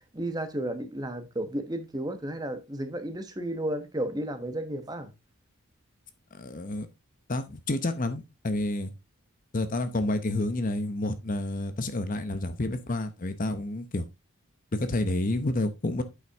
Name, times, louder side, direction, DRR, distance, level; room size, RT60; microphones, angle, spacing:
voice 1, 0.1-5.1, right 1 dB, 15° right, 1.1 m, -33 dB
voice 2, 6.3-6.9 7.3-8.9 9.5-14.0 14.7-16.0, left 2 dB, 40° left, 0.8 m, -29 dB
9.3 x 5.7 x 3.5 m
head